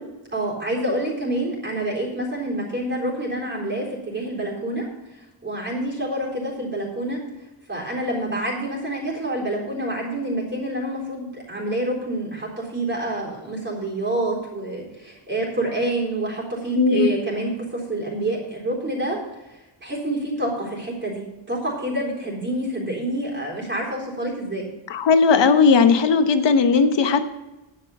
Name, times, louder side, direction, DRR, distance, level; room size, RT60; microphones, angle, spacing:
voice 1, 0.3-4.9 5.1-7.2 7.7-19.2 19.5-24.7, right 1 dB, 25° right, -4 dB, 3.9 m, -27 dB
voice 2, 16.8-17.1 24.9-27.2, left 5 dB, 65° left, 9 dB, 1.1 m, -17 dB
11.0 x 8.9 x 5.5 m, 1.0 s
wide cardioid pair, 175°, 46 cm